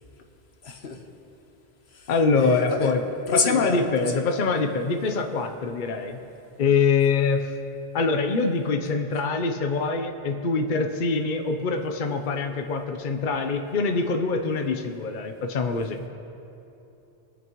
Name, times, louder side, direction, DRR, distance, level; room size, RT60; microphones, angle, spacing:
voice 1, 0.6-1.0 1.9-2.1 2.4-3.0 3.3-4.5, left 4 dB, 85° left, 4 dB, 1.3 m, -29 dB
voice 2, 2.1-3.0 3.3-6.2 6.6-7.5 7.9-16.0, left 4 dB, 55° left, 5 dB, 0.8 m, -24 dB
24.5 x 8.5 x 3.0 m, 2.8 s
omnidirectional pair, 1.1 m